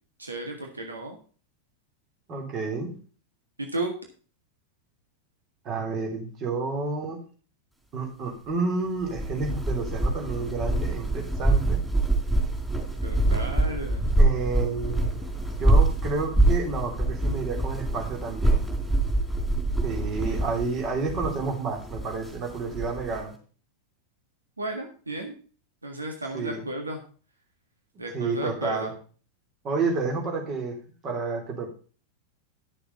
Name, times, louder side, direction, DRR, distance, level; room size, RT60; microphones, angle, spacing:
voice 1, 0.2-1.2 3.6-3.9 13.0-14.0 24.6-25.3 25.8-27.0 28.0-28.9, right 2 dB, 80° right, 3 dB, 1.7 m, -33 dB
voice 2, 2.3-2.9 5.6-7.2 7.9-11.8 14.2-18.6 19.8-23.3 26.3-26.6 28.1-28.9 29.6-30.8 31.0-31.7, right 4 dB, 35° right, 2 dB, 3.2 m, -30 dB
sound 1, 9.0-23.2, right 2 dB, ahead, 4.2 m, -25 dB
11.0 x 6.9 x 5.4 m, 0.40 s
figure-of-eight pair, 90°, 0 cm